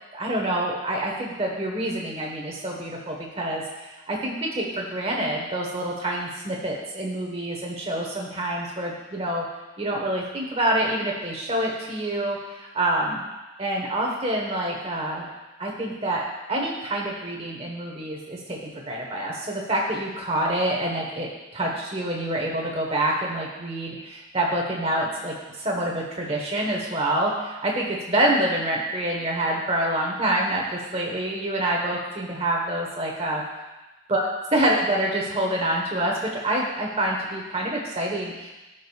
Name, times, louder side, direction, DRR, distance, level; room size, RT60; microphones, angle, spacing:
voice 1, 0.1-3.6 4.1-9.4 9.8-13.2 13.6-15.3 15.6-16.2 16.5-33.4 34.1-34.3 34.5-36.1 36.4-38.5, right 1 dB, 30° right, -1 dB, 1.2 m, -26 dB
14.0 x 5.1 x 2.4 m, 1.1 s
head